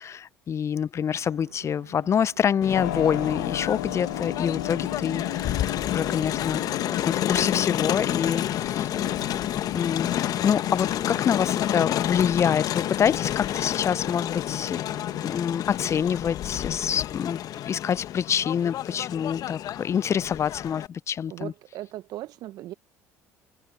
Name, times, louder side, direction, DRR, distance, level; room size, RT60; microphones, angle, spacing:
voice 1, 0.1-6.6 7.0-8.9 9.7-14.8 15.2-21.5, left 8 dB, 40° left, 0.6 m, -26 dB
sound 1, 1.1-15.3, right 12 dB, 85° right, 1.4 m, -52 dB
Crowd, 2.6-20.9, left 12 dB, 55° left, 1.5 m, -29 dB
Keyboard (musical), 2.7-15.5, left 14 dB, 85° left, 0.8 m, -38 dB
voice 2, 9.0-9.4 21.3-22.7, right 14 dB, 60° right, 0.9 m, -38 dB
hypercardioid pair, 60°, 7 cm